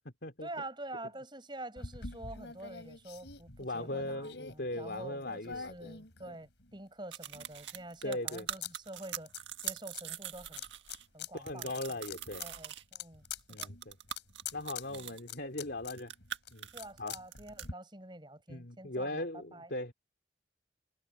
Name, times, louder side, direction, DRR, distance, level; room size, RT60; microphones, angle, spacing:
voice 1, 0.4-9.3 9.6-10.6 11.1-12.0 12.4-13.2 13.6-13.7 14.9-15.0 16.7-19.3 19.5-19.7, right 1 dB, 25° right, 8.0 m, -47 dB
Alexis-compas et colle, 1.8-6.8 7.3-8.7 9.0-10.0 10.6-11.3 11.7-17.7, left 6 dB, 85° left, 4.7 m, -46 dB
voice 2, 3.6-6.0 6.3-6.4 8.0-8.5 11.3-12.4 13.5-14.0 14.5-16.1 16.5-16.7 17.0-17.2 18.5-19.9, left 1 dB, 70° left, 3.1 m, -39 dB
sound 1, 7.1-11.1 11.4-12.8 13.3-15.3 15.8-17.7, right 10 dB, 85° right, 1.7 m, -42 dB
head